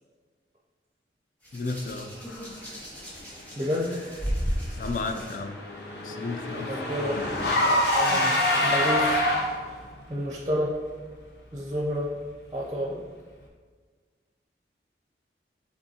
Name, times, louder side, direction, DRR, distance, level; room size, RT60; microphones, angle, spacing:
Hands, 1.4-5.4 6.4-6.6, equal, 10° left, 0.9 m, -34 dB
voice 1, 1.5-2.1 4.8-5.6 6.0-6.7 8.1-8.3, left 3 dB, 50° left, 6 dB, 0.3 m, -33 dB
voice 2, 3.6-3.9 6.6-7.2 7.6-9.2 9.6-9.8 10.1-10.7 11.5-12.1 12.5-13.0, equal, 20° right, -3 dB, 0.5 m, -30 dB
Car / Engine, 4.7-9.8, left 1 dB, 70° left, 0.7 m, -25 dB
5.2 x 3.5 x 2.8 m, 1.5 s
head